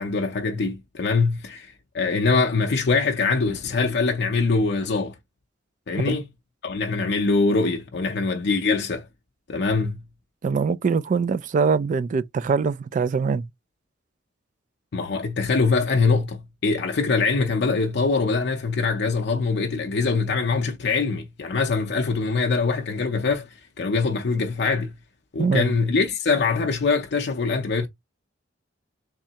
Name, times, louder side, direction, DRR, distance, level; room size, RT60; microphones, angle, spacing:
voice 1, 0.0-5.1 5.9-6.3 6.6-9.1 9.5-10.0 14.9-24.9 25.3-27.9, left 4 dB, 60° left, 0.5 m, -23 dB
voice 2, 10.4-13.4 25.4-25.7, right 5 dB, 40° right, 0.3 m, -23 dB
3.6 x 3.2 x 2.8 m
head